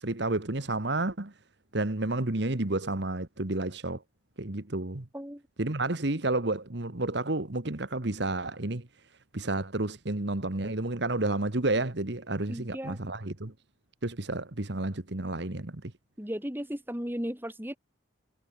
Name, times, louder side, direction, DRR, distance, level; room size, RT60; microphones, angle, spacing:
voice 1, 0.0-1.3 1.7-4.0 4.4-5.1 5.6-8.9 9.3-13.5 14.0-15.9, right 2 dB, 60° right, 1.5 m, -31 dB
voice 2, 12.5-13.0 16.2-17.8, equal, 10° right, 2.6 m, -35 dB
head